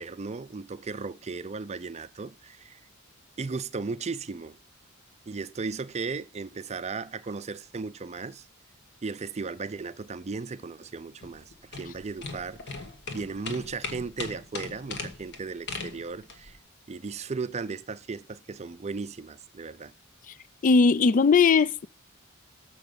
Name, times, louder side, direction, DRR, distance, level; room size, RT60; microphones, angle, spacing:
voice 1, 0.0-2.8 3.4-4.6 5.3-8.5 9.0-12.8 13.1-16.6 16.9-19.9, right 4 dB, 30° right, 0.5 m, -36 dB
sound 1, 11.2-16.5, left 3 dB, 55° left, 1.6 m, -39 dB
voice 2, 20.6-21.9, left 5 dB, 40° left, 0.4 m, -19 dB
7.0 x 6.0 x 6.8 m
head